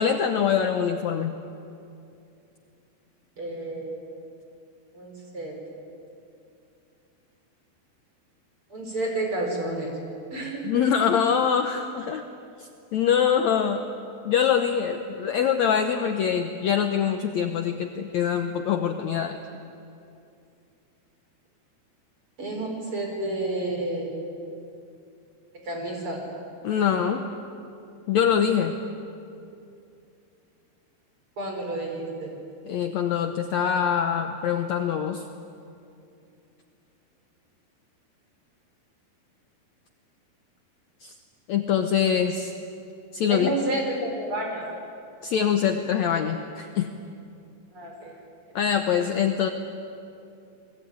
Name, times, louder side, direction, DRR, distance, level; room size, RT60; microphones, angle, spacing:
voice 1, 0.0-1.4 10.6-12.2 12.9-13.8 14.2-19.4 26.6-27.2 28.1-28.7 32.7-35.2 41.0-41.1 41.5-42.5 43.1-43.5 45.2-46.9 48.5-49.5, left 8 dB, 80° left, 6 dB, 1.6 m, -24 dB
voice 2, 3.4-4.0 4.9-5.6 8.7-9.9 10.3-10.6 22.4-24.2 25.6-26.2 31.4-32.3 43.3-44.6 47.7-48.2, right 1 dB, 30° right, 1 dB, 5.6 m, -30 dB
30.0 x 21.0 x 9.5 m, 2.6 s
omnidirectional pair, 4.7 m